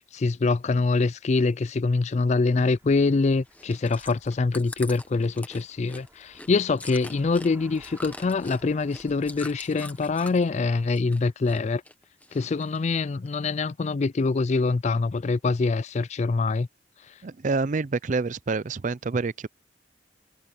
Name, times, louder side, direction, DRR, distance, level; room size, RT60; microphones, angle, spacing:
voice 1, 0.0-11.8 12.3-16.7, left 3 dB, 40° left, 0.4 m, -24 dB
sound 1, 2.7-10.8, right 1 dB, 15° right, 6.5 m, -55 dB
Chewing mastication, 3.5-10.5 10.8-11.6 11.8-12.8 13.3-13.4, left 2 dB, 10° left, 1.4 m, -42 dB
voice 2, 17.2-19.5, right 4 dB, 45° right, 0.5 m, -27 dB
head